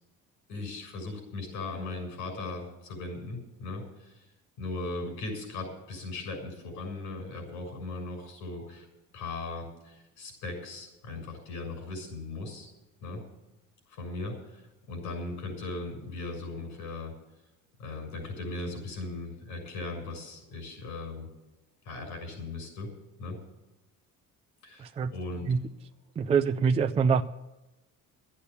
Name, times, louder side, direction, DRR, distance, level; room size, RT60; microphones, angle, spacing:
voice 1, 0.5-4.2 4.6-8.9 9.1-12.7 13.0-13.2 13.9-17.1 17.8-21.3 21.8-22.9 23.2-23.4 24.6-25.6, left 2 dB, 90° left, 3 dB, 6.7 m, -38 dB
voice 2, 24.8-25.2 25.5-25.7 26.2-27.2, right 6 dB, 20° right, 7 dB, 0.4 m, -25 dB
13.0 x 8.6 x 8.4 m, 1.0 s
cardioid pair, 150°, 30 cm